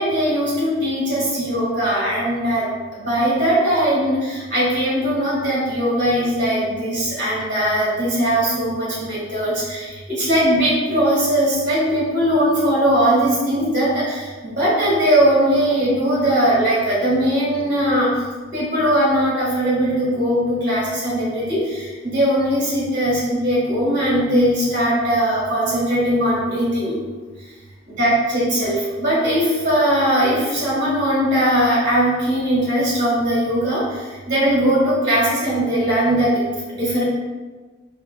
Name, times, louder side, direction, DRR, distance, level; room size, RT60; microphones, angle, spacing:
voice 1, 0.0-2.7 3.0-18.1 18.5-26.9 27.9-33.8 34.3-36.4 36.7-37.0, equal, 45° right, -8 dB, 1.5 m, -19 dB
4.4 x 2.7 x 2.2 m, 1.3 s
head